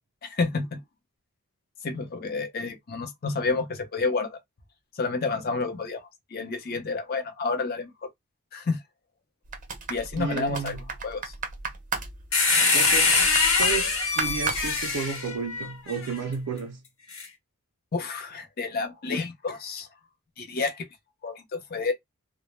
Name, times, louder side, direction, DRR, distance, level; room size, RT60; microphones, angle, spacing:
voice 1, 0.2-0.8 1.8-4.4 4.9-7.9 8.5-8.8 9.9-11.3 17.9-19.9 20.4-20.9 21.2-21.9, left 4 dB, 45° left, 0.5 m, -30 dB
sound 1, 9.4-15.3 15.6-15.7, right 5 dB, 35° right, 0.5 m, -35 dB
voice 2, 10.2-10.8 12.6-13.1 13.6-16.8, right 5 dB, 90° right, 0.4 m, -32 dB
sound 2, 12.3-16.1 17.1-17.3, left 4 dB, 70° left, 0.9 m, -23 dB
2.1 x 2.0 x 3.0 m
head